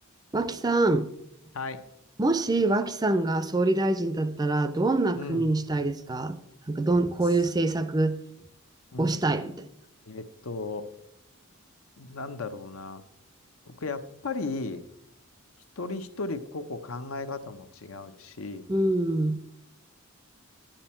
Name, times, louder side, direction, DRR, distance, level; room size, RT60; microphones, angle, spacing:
voice 1, 0.3-1.1 2.2-6.4 6.7-8.2 9.0-9.6 18.7-19.4, right 2 dB, 20° right, 12 dB, 0.5 m, -25 dB
voice 2, 1.5-1.9 5.2-5.5 8.9-9.4 10.1-10.9 12.0-13.0 13.7-14.8 15.8-18.7, left 3 dB, 75° left, 9 dB, 0.8 m, -36 dB
11.0 x 9.0 x 4.4 m, 0.81 s
head